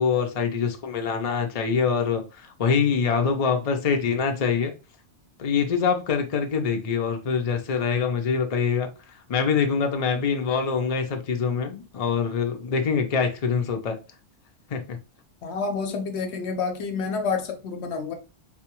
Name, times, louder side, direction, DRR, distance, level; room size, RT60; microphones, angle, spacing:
voice 1, 0.0-4.7 5.4-8.9 9.3-14.0 14.7-15.0, left 6 dB, 50° left, 0.4 m, -24 dB
voice 2, 15.4-18.1, left 5 dB, 70° left, 0.9 m, -28 dB
4.1 x 2.3 x 2.9 m
omnidirectional pair, 1.3 m